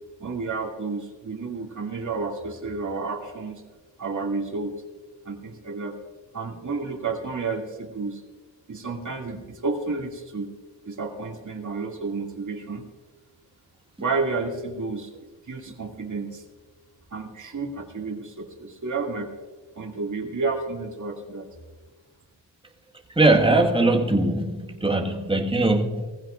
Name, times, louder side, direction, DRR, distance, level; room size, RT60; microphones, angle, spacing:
voice 1, 0.2-3.6 4.0-4.7 5.2-6.0 6.3-8.2 8.7-10.5 10.8-12.8 14.0-16.4 17.1-19.3 19.8-21.5, right 4 dB, 40° right, 0 dB, 2.4 m, -31 dB
voice 2, 23.1-26.1, right 2 dB, 10° right, 2 dB, 1.6 m, -21 dB
19.5 x 15.0 x 2.5 m, 1.3 s
cardioid pair, 85°, 44 cm